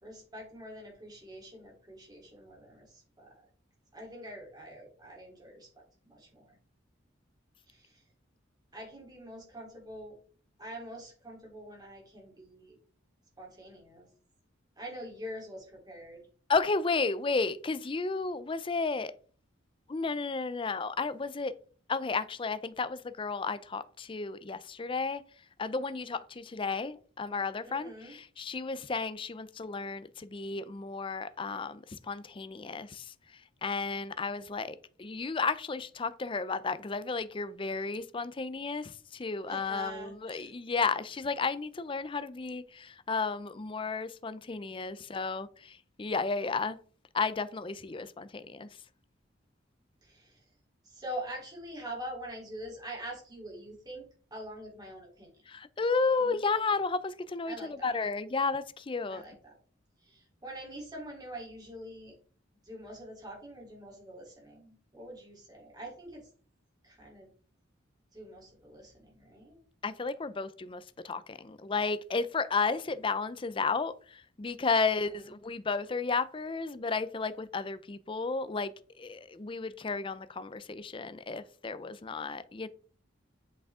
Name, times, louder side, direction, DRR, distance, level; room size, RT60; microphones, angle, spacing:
voice 1, 0.0-3.4 3.9-6.6 7.7-8.0 8.7-10.2 10.6-12.8 13.4-14.1 14.8-16.2 27.6-28.1 39.5-40.5 50.0-50.4 50.8-55.4 56.2-56.4 57.5-57.9 59.1-59.6 60.0-62.1 62.6-66.3 66.8-67.3 68.1-69.6 74.9-75.0, right 1 dB, 20° right, 3.3 m, -45 dB
voice 2, 16.5-19.1 19.9-21.6 21.9-25.2 25.6-46.8 47.1-48.7 55.5-59.2 69.8-82.7, left 4 dB, 25° left, 0.4 m, -33 dB
7.9 x 6.0 x 3.6 m
head